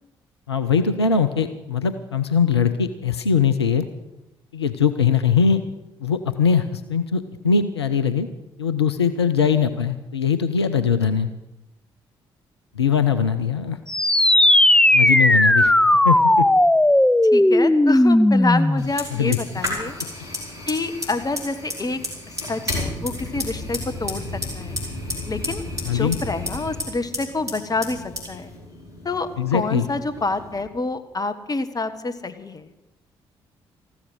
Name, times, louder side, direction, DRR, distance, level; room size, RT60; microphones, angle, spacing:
voice 1, 0.5-3.8 4.5-5.6 6.0-8.3 8.6-11.3 12.7-13.8 14.9-15.7 16.0-16.5 19.1-19.4 25.9-26.2 29.4-29.8, left 6 dB, 85° left, 9 dB, 0.5 m, -21 dB
sound 1, 13.9-18.9, left 1 dB, 5° left, 0.5 m, -16 dB
voice 2, 17.3-19.9 20.7-22.0 22.5-24.8 25.3-25.6 25.9-28.5 29.0-32.7, left 3 dB, 30° left, 9 dB, 1.4 m, -27 dB
Fire, 18.8-30.6, left 1 dB, 85° right, 3.6 m, -32 dB
14.5 x 13.0 x 6.4 m, 0.97 s
figure-of-eight pair, 40°, 13 cm